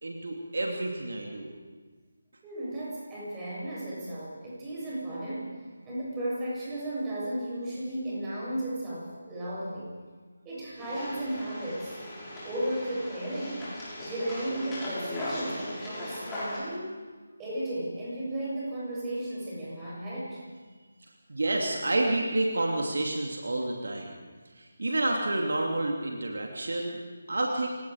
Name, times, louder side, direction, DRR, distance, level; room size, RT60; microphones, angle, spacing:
voice 1, 0.0-1.5 21.3-24.1 24.5-27.0 27.3-27.7, right 2 dB, 65° right, 0 dB, 2.9 m, -29 dB
voice 2, 2.4-5.5 5.8-9.9 10.4-12.0 12.4-13.6 14.0-16.9 17.4-20.4, right 1 dB, 15° right, -7 dB, 7.8 m, -34 dB
sound 1, 10.8-16.6, left 1 dB, 10° left, 6.2 m, -38 dB
28.5 x 18.0 x 5.1 m, 1.5 s
figure-of-eight pair, 155°, 0 cm